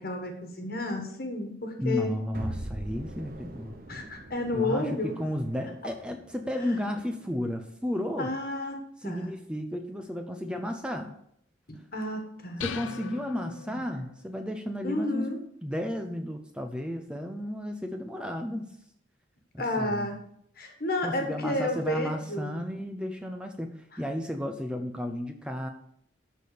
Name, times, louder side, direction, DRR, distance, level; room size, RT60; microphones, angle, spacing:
voice 1, 0.0-2.1 3.9-5.1 8.2-8.8 9.0-9.3 11.7-12.6 13.7-13.8 14.8-15.4 19.6-20.1 20.6-22.6, left 2 dB, 50° left, 3 dB, 1.6 m, -31 dB
voice 2, 1.8-3.8 4.5-8.3 9.0-11.1 12.6-18.7 19.5-20.1 21.0-23.7 24.0-25.7, left 1 dB, 5° right, 5 dB, 0.7 m, -33 dB
sound 1, 2.3-7.4, right 1 dB, 45° right, 1.0 m, -43 dB
sound 2, 12.6-14.2, left 5 dB, 85° left, 0.7 m, -38 dB
12.0 x 4.2 x 6.7 m, 0.70 s
head